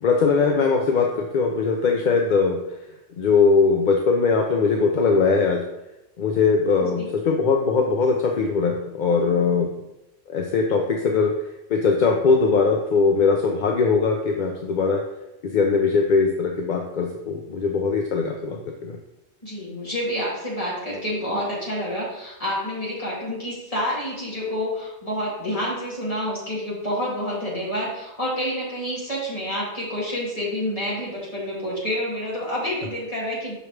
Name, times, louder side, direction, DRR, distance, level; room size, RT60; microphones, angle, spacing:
voice 1, 0.0-2.8 3.2-5.7 6.2-9.7 10.3-11.3 11.7-15.0 15.4-19.0, left 4 dB, 55° left, 2 dB, 0.6 m, -21 dB
voice 2, 19.4-33.5, equal, 35° left, -7 dB, 2.4 m, -28 dB
6.0 x 5.0 x 3.2 m, 0.92 s
omnidirectional pair, 1.1 m